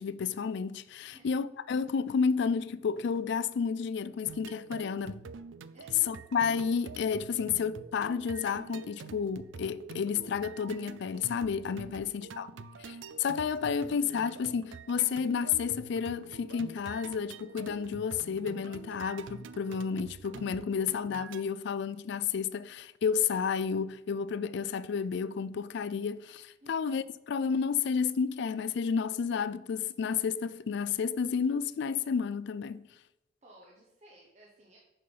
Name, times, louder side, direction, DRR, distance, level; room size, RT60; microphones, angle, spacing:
voice 1, 0.0-5.2 6.0-12.5 12.8-32.9, left 6 dB, 65° left, 0.4 m, -31 dB
sound 1, 4.3-21.4, right 5 dB, 90° right, 0.4 m, -46 dB
voice 2, 5.7-6.2 11.9-12.3 26.6-26.7 33.4-34.8, right 1 dB, 40° right, 1.2 m, -58 dB
6.6 x 5.6 x 5.5 m
head